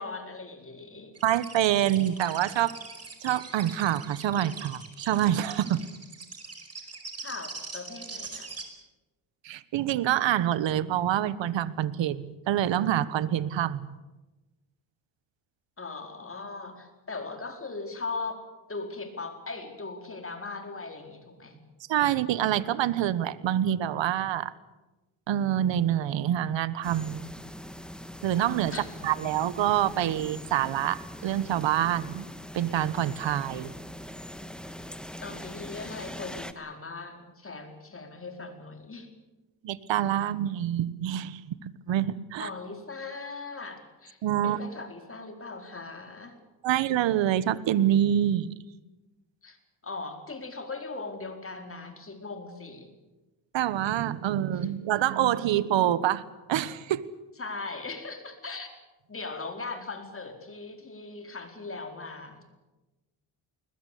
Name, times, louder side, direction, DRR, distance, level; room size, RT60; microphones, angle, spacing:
voice 1, 0.0-1.1 7.2-8.5 15.8-21.6 28.7-28.8 35.2-39.1 42.4-44.2 44.4-46.4 49.4-49.6 49.8-52.9 57.4-58.7 59.1-62.5, left 3 dB, 30° left, 5 dB, 4.5 m, -39 dB
sound 1, 1.1-8.6, right 4 dB, 30° right, 5.0 m, -42 dB
voice 2, 1.2-2.8 3.2-5.8 9.4-14.0 21.9-24.5 25.3-27.3 28.2-28.7 29.0-32.3 32.5-33.7 39.6-42.5 44.2-44.6 46.6-48.5 53.5-56.2 56.5-57.0, right 11 dB, 70° right, 17 dB, 1.3 m, -26 dB
sound 2, 26.8-36.5, equal, ahead, 1.6 m, -42 dB
21.0 x 20.5 x 8.5 m, 1.1 s
cardioid pair, 90°, 47 cm